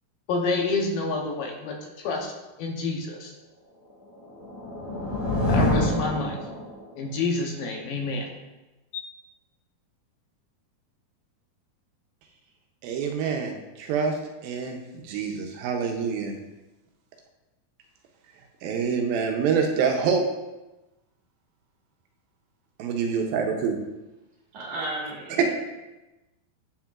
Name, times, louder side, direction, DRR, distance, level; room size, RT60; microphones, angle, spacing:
voice 1, 0.3-2.3 2.6-3.3 5.5-6.4 7.0-8.3 8.9-9.0, left 3 dB, 75° left, 1 dB, 2.6 m, -28 dB
sound 1, 4.1-7.0, left 1 dB, 35° left, 1.0 m, -26 dB
voice 2, 12.8-16.4 18.6-20.3 22.8-23.8 25.4-25.5, right 6 dB, 80° right, 3 dB, 2.5 m, -26 dB
voice 3, 24.5-25.5, right 1 dB, 55° right, -5 dB, 2.9 m, -33 dB
9.1 x 7.4 x 2.4 m, 1.0 s
omnidirectional pair, 4.3 m